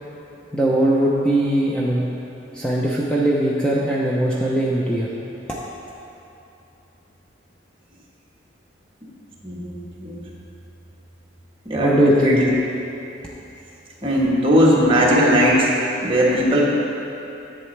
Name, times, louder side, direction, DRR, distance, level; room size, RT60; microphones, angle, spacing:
voice 1, 0.5-2.1 2.5-5.1 11.8-12.4, right 1 dB, 5° left, -5 dB, 0.6 m, -20 dB
voice 2, 9.4-10.3 11.6-12.6 14.0-15.7 16.0-16.8, equal, 25° right, -5 dB, 1.3 m, -18 dB
11.0 x 7.6 x 3.3 m, 2.9 s
head